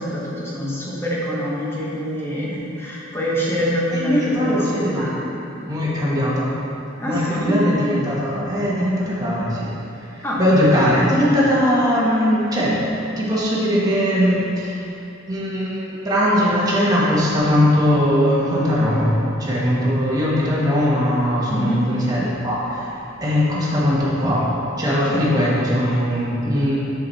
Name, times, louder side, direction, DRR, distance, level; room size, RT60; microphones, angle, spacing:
voice 1, 0.0-5.3 7.0-7.6 10.2-10.4 21.5-21.9 25.1-25.2, equal, 10° left, -6 dB, 1.3 m, -25 dB
voice 2, 3.9-5.1 5.7-6.5 7.0-9.7 10.0-12.8 13.2-14.8 15.3-19.1 19.4-24.5 24.8-26.7, equal, 20° right, -8 dB, 1.4 m, -20 dB
6.4 x 6.1 x 4.1 m, 2.9 s
head